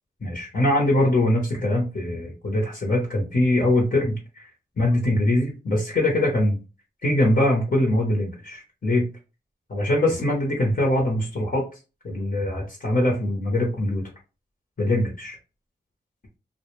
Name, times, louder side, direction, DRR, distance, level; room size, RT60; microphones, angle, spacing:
voice 1, 0.2-4.5 4.8-6.6 7.0-9.0 9.7-11.6 12.0-14.0 14.8-15.3, left 1 dB, 55° left, 0 dB, 0.8 m, -22 dB
2.2 x 2.1 x 3.0 m, 0.31 s
cardioid pair, 55°, 18 cm